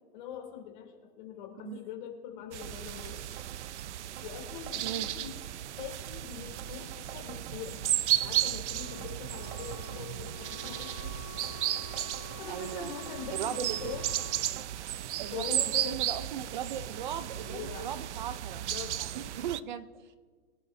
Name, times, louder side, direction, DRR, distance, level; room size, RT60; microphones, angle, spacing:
voice 1, 0.1-3.2 4.2-5.3 5.8-7.8 8.2-11.2 11.5-11.6 12.4-14.0 15.3-16.3 17.3-17.9 18.6-19.0, left 8 dB, 45° left, 2 dB, 3.2 m, -43 dB
sound 1, 2.5-19.6, right 12 dB, 80° right, 0.6 m, -34 dB
sound 2, 2.6-2.7 3.0-3.1 3.4-3.7 4.1-5.5 5.8-6.2 6.5-7.9 8.2-8.6 9.0-10.3 10.6-11.0 11.4-12.7 13.1-13.4 13.8-14.3 14.6-14.7 14.9-15.0 15.8-15.9 16.7-16.8, right 8 dB, 60° right, 1.6 m, -50 dB
Wind instrument woodwind instrument, 8.6-14.4, left 6 dB, 25° right, 2.6 m, -50 dB
voice 2, 12.5-12.9 13.3-13.9 15.2-18.6 19.0-20.1, right 9 dB, 45° right, 13 dB, 0.6 m, -38 dB
23.5 x 11.5 x 2.7 m, 1.5 s
hypercardioid pair, 165°, 34 cm